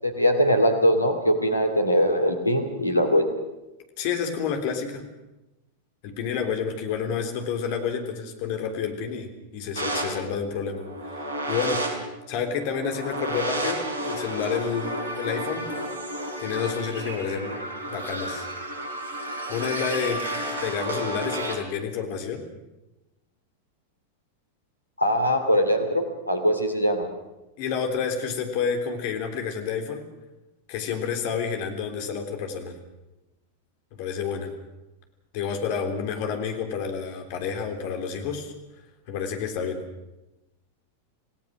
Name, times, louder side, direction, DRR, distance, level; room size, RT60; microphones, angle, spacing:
voice 1, 0.0-3.3 25.0-27.1, equal, 85° left, 6 dB, 2.9 m, -22 dB
voice 2, 4.0-5.0 6.0-11.9 12.3-15.7 16.4-17.6 17.9-18.5 19.5-22.5 27.6-30.1 30.7-32.7 34.0-34.5 35.3-38.5 39.1-39.8, left 6 dB, 45° left, 4 dB, 3.4 m, -29 dB
sound 1, 9.8-21.6, right 1 dB, 65° right, 4.8 m, -32 dB
27.5 x 17.0 x 6.3 m, 0.99 s
figure-of-eight pair, 90°, 0 cm